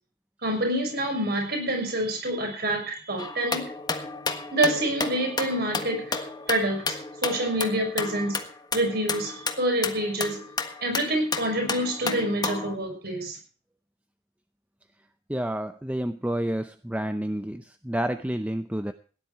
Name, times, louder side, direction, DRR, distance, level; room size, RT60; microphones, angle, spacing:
voice 1, 0.4-3.7 4.5-8.4 8.7-10.4 10.8-13.4, right 1 dB, 55° right, 3 dB, 6.2 m, -27 dB
sound 1, 3.2-12.8, left 4 dB, 20° left, 1.5 m, -32 dB
voice 2, 15.3-18.9, right 1 dB, 10° right, 9 dB, 0.6 m, -29 dB
17.5 x 11.0 x 4.8 m, 0.40 s
head